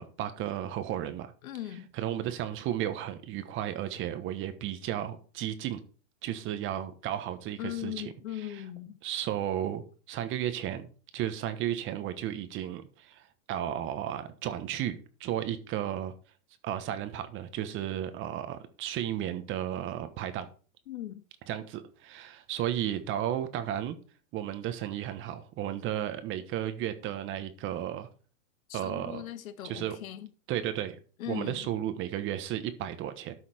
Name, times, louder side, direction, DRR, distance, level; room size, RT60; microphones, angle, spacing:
voice 1, 0.0-1.3 1.9-5.8 6.2-8.6 9.0-16.1 16.6-20.5 21.5-24.0 24.3-28.1 28.7-29.2 29.6-30.0 30.5-31.0 31.3-33.3, right 11 dB, 25° right, 1.2 m, -34 dB
voice 2, 1.4-1.9 7.6-9.0 20.9-21.2 28.7-30.3 31.2-31.7, left 12 dB, 65° left, 1.4 m, -39 dB
12.5 x 5.8 x 4.3 m
hypercardioid pair, 140°, 45 cm